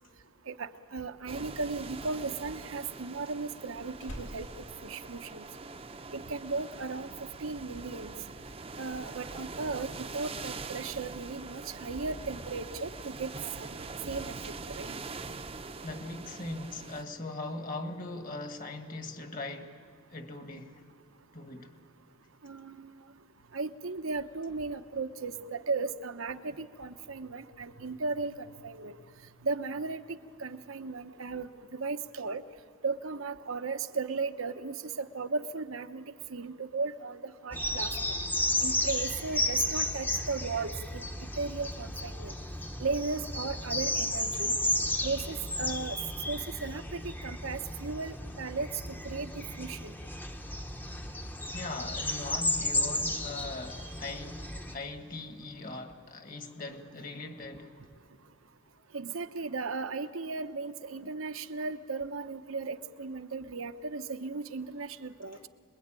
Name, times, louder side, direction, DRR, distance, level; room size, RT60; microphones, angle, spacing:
voice 1, 0.5-4.5 4.8-5.5 6.1-7.1 7.4-8.1 8.8-13.3 13.6-14.9 22.4-22.9 23.5-28.9 29.4-32.4 32.8-38.2 38.6-41.0 41.4-42.3 42.8-44.6 45.0-46.0 46.3-48.7 49.0-49.9 53.8-53.9 58.9-65.5, right 4 dB, 80° right, 1.0 m, -36 dB
sound 1, 1.3-17.0, right 3 dB, 30° right, 0.7 m, -43 dB
Slam, 4.0-5.8 6.1-6.5, equal, 80° left, 4.9 m, -48 dB
voice 2, 15.8-19.8 20.1-20.8 21.3-21.8 51.5-57.7 65.3-65.4, left 2 dB, 40° left, 1.7 m, -40 dB
sound 2, 37.5-54.7, left 1 dB, 10° left, 0.8 m, -33 dB
26.5 x 21.5 x 9.0 m
head